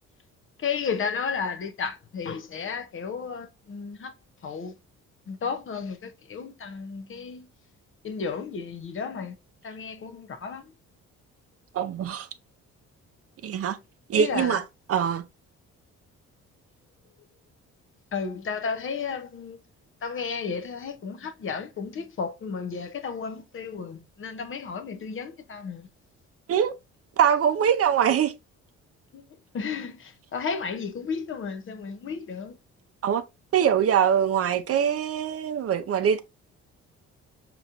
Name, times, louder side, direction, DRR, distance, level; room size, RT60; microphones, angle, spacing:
voice 1, 0.6-4.1 4.4-4.7 5.3-7.5 8.0-9.4 9.6-10.7 14.1-14.6 18.1-19.6 20.0-25.9 29.1-29.2 29.5-32.6, left 5 dB, 45° left, 0.7 m, -33 dB
voice 2, 11.7-12.3 13.4-13.8 14.1-14.6 14.9-15.2 26.5-26.7 27.2-28.3 33.0-33.2 33.5-36.2, right 8 dB, 50° right, 0.5 m, -23 dB
5.0 x 3.0 x 2.4 m
cardioid pair, 90°, 30 cm